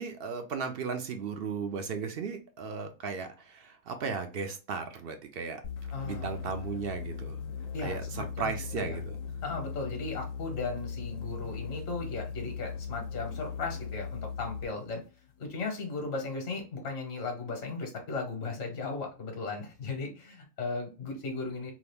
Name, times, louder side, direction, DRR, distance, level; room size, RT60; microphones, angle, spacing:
voice 1, 0.0-5.6 6.0-7.4 7.8-9.2, right 5 dB, 60° right, 0.6 m, -36 dB
sound 1, 5.6-14.8, left 6 dB, 85° left, 1.0 m, -38 dB
voice 2, 5.9-6.3 7.7-9.0 9.4-15.0 15.4-21.7, left 3 dB, 55° left, 1.1 m, -36 dB
2.9 x 2.4 x 3.3 m
omnidirectional pair, 1.4 m